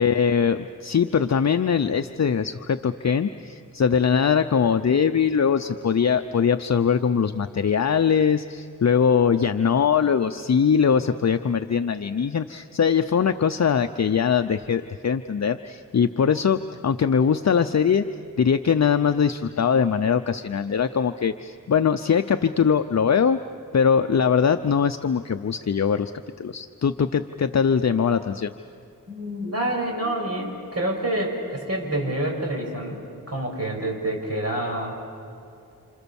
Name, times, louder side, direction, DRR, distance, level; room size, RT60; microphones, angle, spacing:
voice 1, 0.0-18.0 18.4-23.4 23.7-26.1 26.4-28.5, left 7 dB, 50° left, 8 dB, 0.7 m, -21 dB
voice 2, 29.1-35.0, right 1 dB, 45° right, 1 dB, 6.1 m, -27 dB
29.5 x 27.5 x 7.2 m, 2.6 s
wide cardioid pair, 90°, 34 cm